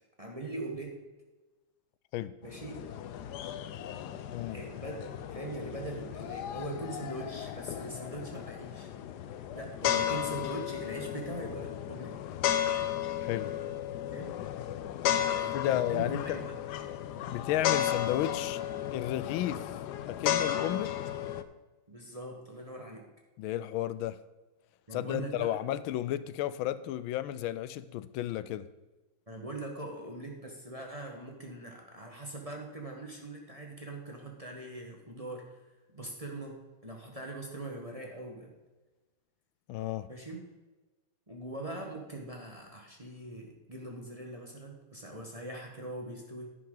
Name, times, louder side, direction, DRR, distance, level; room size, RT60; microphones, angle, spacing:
voice 1, 0.2-1.1 2.4-2.9 4.5-8.9 9.5-12.2 14.1-14.4 15.3-16.5 18.3-18.4 21.9-23.1 24.9-25.6 29.3-35.6 35.9-38.6 40.1-40.4 41.3-46.5, right 2 dB, 20° right, 0 dB, 1.1 m, -42 dB
sound 1, 2.4-21.4, left 10 dB, 70° left, 1.1 m, -34 dB
voice 2, 13.2-13.6 15.5-16.4 17.3-18.6 18.9-19.8 20.1-21.0 23.4-24.2 24.9-28.7 39.7-40.1, left 13 dB, 90° left, 15 dB, 1.4 m, -33 dB
10.5 x 9.9 x 3.9 m, 1.2 s
omnidirectional pair, 2.2 m